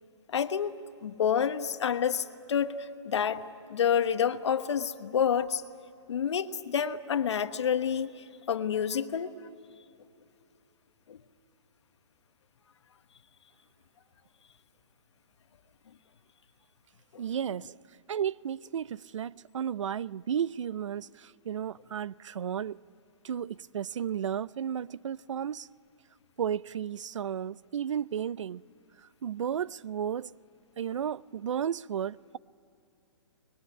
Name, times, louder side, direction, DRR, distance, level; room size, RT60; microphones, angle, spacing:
voice 1, 0.3-0.7 1.0-3.4 3.7-5.6 6.1-9.3 11.1-11.2, left 8 dB, 70° left, 1.3 m, -28 dB
voice 2, 17.2-17.8 18.1-22.8 23.2-25.7 26.4-28.6 29.2-30.3 30.8-32.4, right 8 dB, 85° right, 0.5 m, -33 dB
25.0 x 21.5 x 10.0 m
hypercardioid pair, 170°, 15 cm